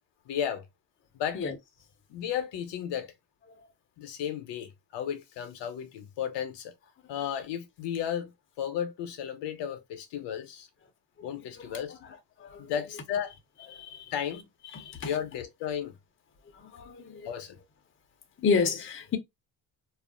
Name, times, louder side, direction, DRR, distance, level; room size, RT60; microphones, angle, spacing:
voice 1, 0.3-0.6 1.1-1.4 2.1-3.1 4.0-6.7 7.1-8.3 8.6-10.7 11.2-12.0 12.6-13.3 14.1-14.5 15.0-15.9 17.2-17.6, left 9 dB, 70° left, 0.8 m, -34 dB
voice 2, 12.4-12.7 13.7-14.1 14.7-15.1 16.7-17.3 18.4-19.2, left 5 dB, 30° left, 0.6 m, -30 dB
2.4 x 2.0 x 3.6 m
cardioid pair, 125°, 44 cm